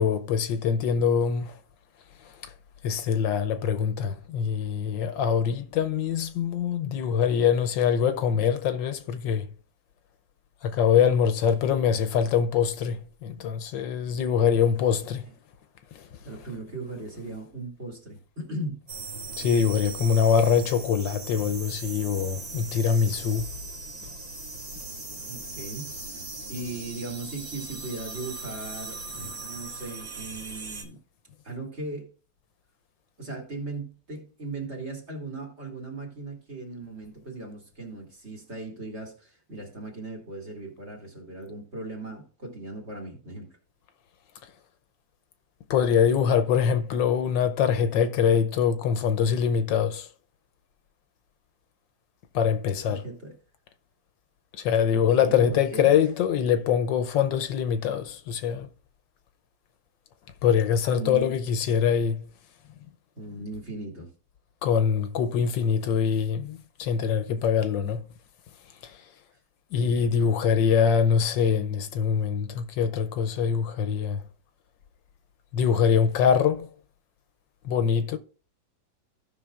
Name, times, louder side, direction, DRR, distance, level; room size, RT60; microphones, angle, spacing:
voice 1, 0.0-1.6 2.2-2.5 2.8-9.5 10.6-15.3 15.9-16.1 19.4-23.5 45.7-50.1 52.3-53.0 54.6-58.7 60.4-62.2 64.6-68.0 68.8-69.0 69.7-74.2 75.5-76.7 77.6-78.2, left 7 dB, 75° left, 1.3 m, -24 dB
voice 2, 16.2-18.8 25.3-31.0 31.4-32.1 33.2-43.6 52.9-53.3 54.9-55.9 60.9-61.3 63.2-64.1, right 2 dB, 35° right, 2.3 m, -38 dB
sound 1, 18.9-30.8, right 3 dB, 70° right, 2.9 m, -39 dB
16.0 x 5.7 x 2.4 m
omnidirectional pair, 2.1 m